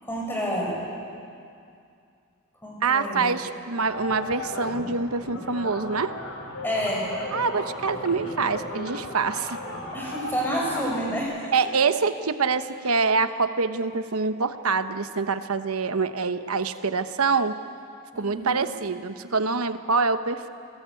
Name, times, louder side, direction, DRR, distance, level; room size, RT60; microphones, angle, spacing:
voice 1, 0.0-0.8 2.6-3.3 6.6-7.1 9.9-11.7 18.1-18.6, equal, 10° left, -3 dB, 6.6 m, -29 dB
voice 2, 2.8-6.1 7.3-9.6 11.5-17.6 18.2-20.5, right 4 dB, 85° right, 10 dB, 1.1 m, -25 dB
sound 1, 3.9-11.2, left 1 dB, 75° left, 4.1 m, -36 dB
28.0 x 19.0 x 8.5 m, 2.4 s
head